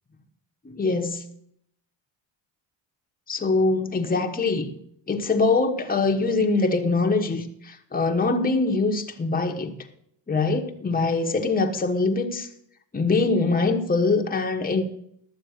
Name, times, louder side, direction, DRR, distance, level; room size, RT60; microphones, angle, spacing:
voice 1, 0.6-1.2 3.3-4.7 5.1-9.7 10.3-12.5 12.9-14.8, left 3 dB, 20° left, 1.2 m, -23 dB
12.0 x 7.2 x 6.5 m
cardioid pair, 85°, 45 cm